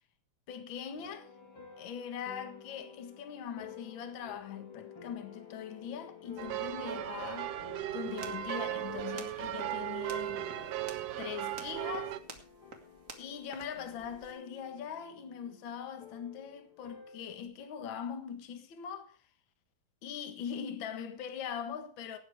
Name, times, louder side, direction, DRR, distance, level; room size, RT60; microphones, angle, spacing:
voice 1, 0.5-1.3 1.8-7.7 7.9-10.4 11.2-12.1 13.2-19.2 20.0-22.2, left 8 dB, 55° left, 1.4 m, -41 dB
sound 1, 0.9-17.4, left 6 dB, 35° left, 3.0 m, -52 dB
sound 2, 6.4-12.2, right 13 dB, 75° right, 2.1 m, -37 dB
Talk Button, 8.0-14.3, right 4 dB, 55° right, 0.8 m, -52 dB
18.0 x 8.7 x 4.8 m
omnidirectional pair, 4.6 m